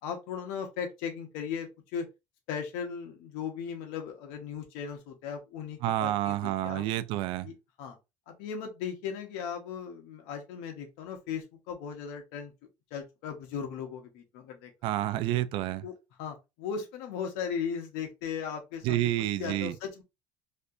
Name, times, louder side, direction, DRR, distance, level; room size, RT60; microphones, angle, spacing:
voice 1, 0.0-2.1 2.5-6.8 7.4-7.5 7.8-8.0 8.3-12.5 12.9-14.7 15.8-15.9 16.2-19.1 19.4-20.0, left 7 dB, 80° left, 0.9 m, -37 dB
voice 2, 5.8-7.5 14.8-15.8 18.8-19.8, right 14 dB, 70° right, 0.4 m, -29 dB
3.2 x 2.7 x 2.5 m
supercardioid pair, 110°, 10 cm